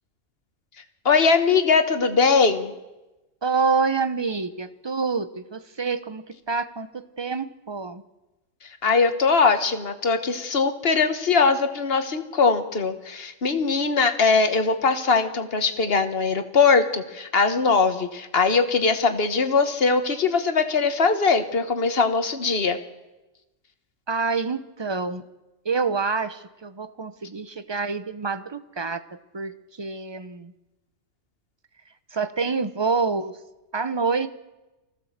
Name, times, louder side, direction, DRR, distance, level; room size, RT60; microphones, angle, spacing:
voice 1, 1.0-2.7 8.8-22.8, left 4 dB, 50° left, 8 dB, 1.6 m, -21 dB
voice 2, 3.4-8.0 24.1-25.2 25.6-30.5 32.1-33.4 33.7-34.3, right 4 dB, 25° right, 12 dB, 0.8 m, -27 dB
24.5 x 16.0 x 7.5 m, 1.1 s
omnidirectional pair, 1.3 m